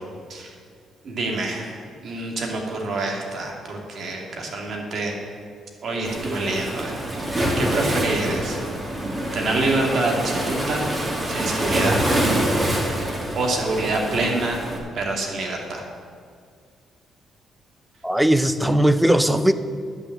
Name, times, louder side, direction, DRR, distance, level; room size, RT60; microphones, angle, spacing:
voice 1, 1.0-5.2 5.8-7.0 7.3-8.6 9.3-10.9 11.3-12.1 13.3-14.7 14.9-15.8, right 2 dB, 60° right, 0 dB, 2.5 m, -26 dB
Waves surf, 6.0-14.8, right 1 dB, 25° right, 2.4 m, -25 dB
voice 2, 18.0-19.5, right 1 dB, 5° right, 12 dB, 0.7 m, -18 dB
10.5 x 6.5 x 9.1 m, 2.2 s
cardioid pair, 90°, 0 cm